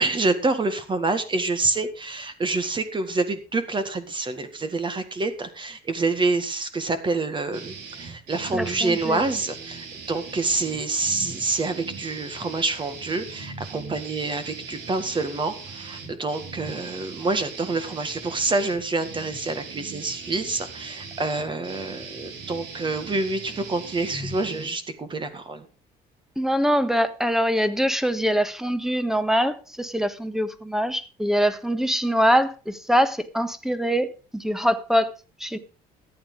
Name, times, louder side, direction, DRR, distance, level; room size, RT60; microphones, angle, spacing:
voice 1, 0.0-25.6, right 3 dB, 30° right, 1.8 m, -27 dB
sound 1, 7.5-24.7, right 4 dB, 90° right, 4.0 m, -39 dB
voice 2, 8.5-9.2 26.4-35.1 35.4-35.6, equal, 5° right, 1.4 m, -23 dB
14.0 x 9.7 x 5.0 m
cardioid pair, 110°, 17 cm